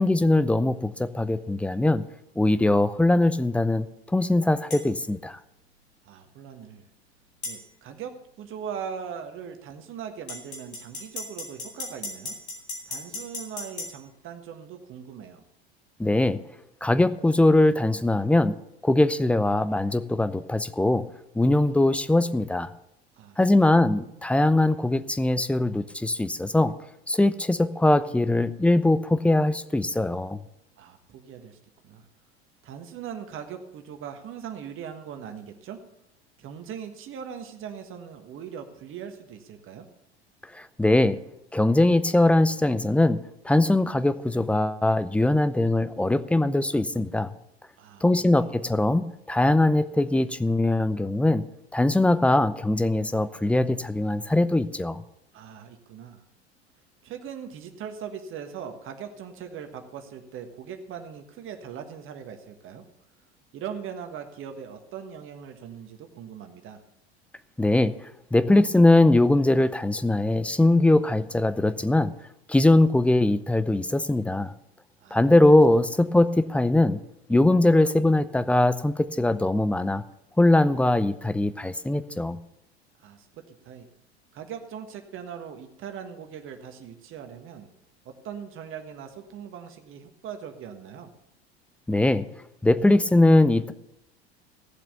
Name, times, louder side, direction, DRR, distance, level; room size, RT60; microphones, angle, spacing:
voice 1, 0.0-2.0 2.4-3.9 4.1-5.4 16.0-16.4 16.8-18.6 18.8-21.1 21.3-22.7 23.4-26.7 27.1-30.4 40.5-41.2 41.5-47.3 48.0-51.5 51.7-55.0 67.6-72.1 72.5-74.5 75.1-77.0 77.3-80.0 80.4-82.4 91.9-92.3 92.6-93.7, left 2 dB, 5° left, 14 dB, 0.6 m, -21 dB
sound 1, 4.7-4.9 7.4-7.6 10.3-13.9, left 2 dB, 80° left, 3.3 m, -36 dB
voice 2, 6.0-6.9 7.4-12.4 12.9-15.4 23.1-23.9 30.8-31.6 31.8-32.1 32.6-35.8 36.4-39.9 47.8-48.6 55.3-56.2 57.0-62.8 63.5-66.8 75.0-75.8 83.0-83.9 84.3-87.7 88.0-91.1, right 8 dB, 40° right, 6 dB, 1.5 m, -40 dB
16.5 x 7.5 x 6.9 m, 0.81 s
figure-of-eight pair, 75°, 32 cm